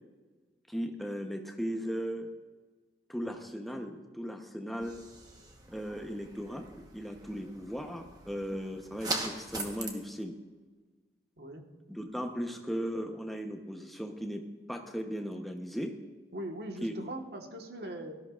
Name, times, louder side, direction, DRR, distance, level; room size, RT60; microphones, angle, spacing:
voice 1, 0.7-2.3 3.1-5.0 5.7-6.6 6.9-10.3 11.9-14.4 14.7-16.0 16.8-16.9, equal, ahead, 3 dB, 0.9 m, -37 dB
sound 1, 4.8-9.9, right 2 dB, 20° right, 1.1 m, -41 dB
voice 2, 16.3-18.1, right 1 dB, 70° right, 3 dB, 1.5 m, -40 dB
17.5 x 13.5 x 2.5 m, 1.3 s
head